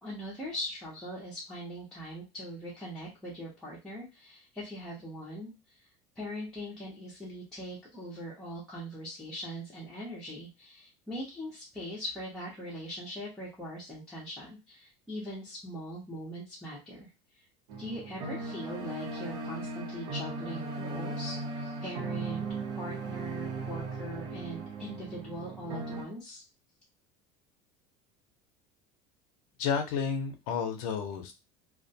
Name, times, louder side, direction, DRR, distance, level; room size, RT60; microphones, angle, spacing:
voice 1, 0.0-5.5 5.8-5.9 6.2-17.1 17.4-17.5 17.8-26.4, equal, 5° left, -8 dB, 0.5 m, -41 dB
sound 1, 17.7-26.0, right 3 dB, 70° right, 0.8 m, -37 dB
voice 2, 29.6-31.3, left 6 dB, 85° left, 4 dB, 0.6 m, -31 dB
2.3 x 2.1 x 2.6 m, 0.25 s
cardioid pair, 175°, 17 cm